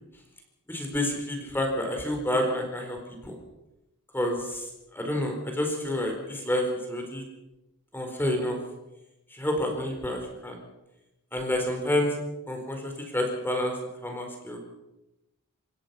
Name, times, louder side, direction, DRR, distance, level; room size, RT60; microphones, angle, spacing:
voice 1, 0.7-3.0 3.2-3.4 4.1-7.2 7.9-8.6 9.3-10.6 11.3-12.1 12.5-13.8 14.0-14.6, left 1 dB, 10° left, 2 dB, 4.6 m, -29 dB
29.5 x 16.5 x 5.9 m, 0.94 s
head